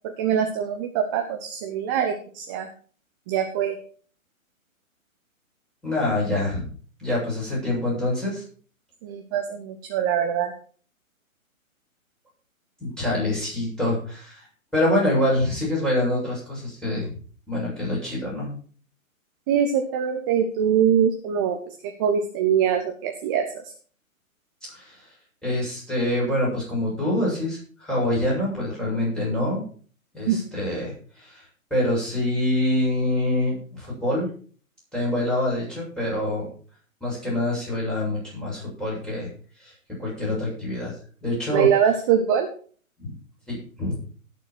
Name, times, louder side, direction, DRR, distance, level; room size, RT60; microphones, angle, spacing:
voice 1, 0.0-2.7 3.3-3.8 9.0-10.5 19.5-23.7 30.3-30.4 41.5-42.5, right 8 dB, 15° right, 5 dB, 0.6 m, -23 dB
voice 2, 5.8-6.7 7.0-8.4 12.8-14.5 14.7-17.1 17.5-18.5 24.7-25.1 25.4-29.6 30.1-31.4 31.7-34.3 34.9-36.5 37.0-39.3 39.6-39.7 40.0-40.9 41.2-41.7 43.0-43.1 43.5-43.9, left 1 dB, ahead, -6 dB, 7.3 m, -25 dB
17.0 x 6.9 x 4.6 m, 0.44 s
figure-of-eight pair, 130°, 42 cm